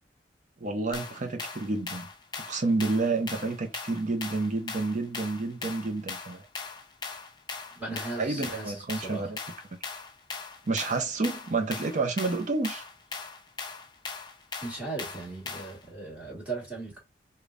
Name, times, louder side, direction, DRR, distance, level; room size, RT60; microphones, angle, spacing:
voice 1, 0.6-2.1 2.5-6.5 7.9-9.4 10.7-12.9, right 3 dB, 45° right, 0.6 m, -29 dB
sound 1, 0.9-15.8, left 5 dB, 25° left, 0.5 m, -40 dB
voice 2, 7.7-9.3 14.6-17.0, right 3 dB, 10° right, 1.5 m, -37 dB
5.1 x 2.2 x 2.4 m
head